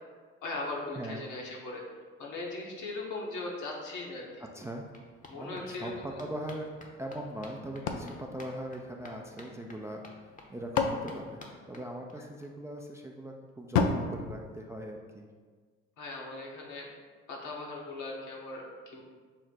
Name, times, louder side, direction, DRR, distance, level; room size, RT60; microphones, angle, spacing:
voice 1, 0.4-1.8 2.2-4.5 5.3-6.1 16.0-16.9 17.3-19.0, left 2 dB, 65° left, -2 dB, 1.2 m, -39 dB
sound 1, 3.7-3.8 4.0-12.5 12.8-12.9 13.1-13.2 13.5-13.6, left 2 dB, 25° left, 0.8 m, -53 dB
voice 2, 4.5-4.9 5.3-6.7 7.0-15.3, right 1 dB, 10° right, 1 dB, 0.4 m, -40 dB
sound 2, 7.9-9.4 10.3-12.2 13.7-15.3, left 5 dB, 80° left, 0.5 m, -33 dB
6.2 x 2.1 x 4.0 m, 1.5 s
hypercardioid pair, 60°, 33 cm